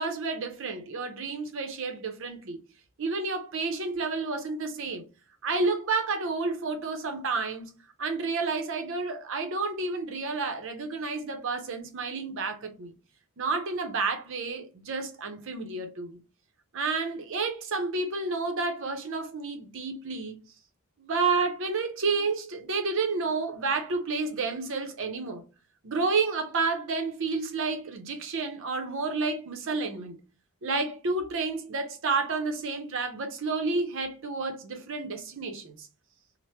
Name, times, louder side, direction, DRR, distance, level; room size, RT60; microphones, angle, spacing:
voice 1, 0.0-2.6 3.0-5.0 5.4-7.7 8.0-12.9 13.4-16.2 16.7-20.4 21.0-25.4 25.8-30.2 30.6-35.9, right 4 dB, 65° right, 0.6 m, -30 dB
2.9 x 2.1 x 3.2 m
head